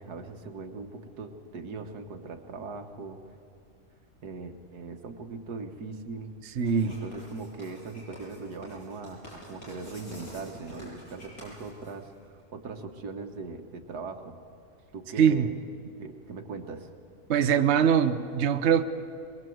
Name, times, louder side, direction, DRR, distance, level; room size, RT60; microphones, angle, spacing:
voice 1, 0.0-3.2 4.2-6.3 6.8-12.1 12.5-14.4 14.9-15.5 16.0-16.9, right 4 dB, 90° right, 5 dB, 2.0 m, -40 dB
Writing, 6.6-12.4, equal, 65° left, 8.3 m, -48 dB
voice 2, 6.6-6.9 15.2-15.5 17.3-18.8, right 8 dB, 50° right, 8 dB, 1.1 m, -22 dB
23.0 x 22.5 x 7.9 m, 2.5 s
omnidirectional pair, 1.6 m